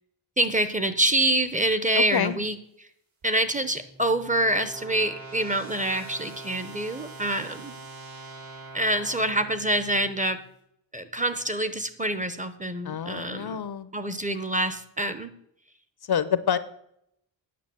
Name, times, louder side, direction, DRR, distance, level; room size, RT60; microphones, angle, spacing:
voice 1, 0.4-2.6 3.2-7.7 8.7-10.4 10.9-13.6 13.9-15.3, right 1 dB, 15° right, 11 dB, 0.7 m, -26 dB
voice 2, 2.0-2.4 12.8-13.9 16.0-16.6, left 8 dB, 50° left, 14 dB, 0.6 m, -27 dB
sound 1, 3.2-10.3, right 3 dB, 70° right, 3.9 m, -44 dB
9.5 x 5.8 x 7.6 m, 0.73 s
wide cardioid pair, 135°, 48 cm